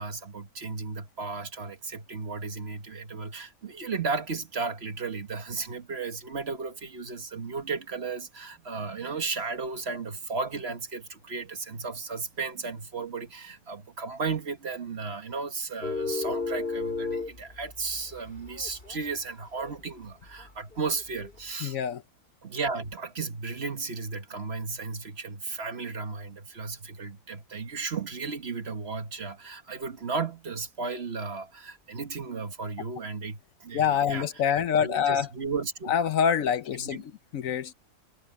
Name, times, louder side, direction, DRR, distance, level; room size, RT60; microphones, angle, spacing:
voice 1, 0.0-21.8 22.4-34.3 34.8-35.9 36.8-37.0, right 4 dB, 45° right, 1.5 m, -34 dB
sound 1, 15.8-19.2 19.6-19.8 20.4-21.4, left 4 dB, 35° left, 3.8 m, -34 dB
voice 2, 21.6-22.0 33.7-35.3 35.9-37.7, left 8 dB, 65° left, 1.1 m, -26 dB
omnidirectional pair, 1.6 m